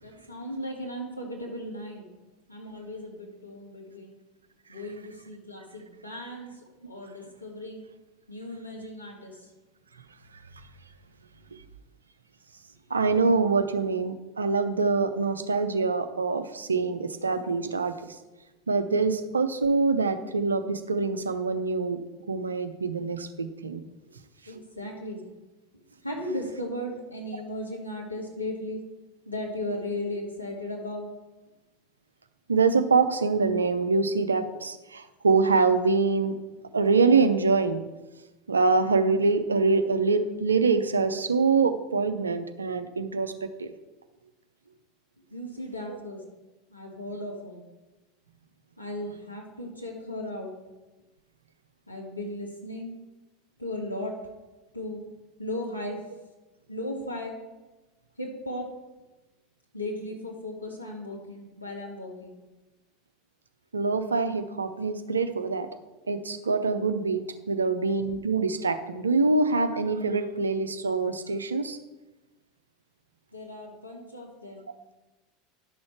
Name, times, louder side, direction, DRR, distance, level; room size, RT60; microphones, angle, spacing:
voice 1, 0.0-2.1 2.5-4.1 4.7-7.9 8.3-9.5 24.5-25.2 26.0-28.8 29.3-31.1 45.3-46.2 46.7-47.6 48.8-50.5 51.9-52.9 53.6-54.2 54.7-55.0 55.4-56.0 56.7-57.4 58.2-58.7 59.7-62.4 73.3-74.7, left 1 dB, 90° left, -1 dB, 1.9 m, -36 dB
voice 2, 12.9-18.2 18.7-22.0 22.3-23.8 32.5-36.4 36.7-37.9 38.5-43.7 45.9-46.0 63.7-65.7 66.1-71.8, right 4 dB, 80° right, 10 dB, 0.6 m, -25 dB
11.0 x 6.3 x 4.6 m, 1.1 s
figure-of-eight pair, 75°, 0 cm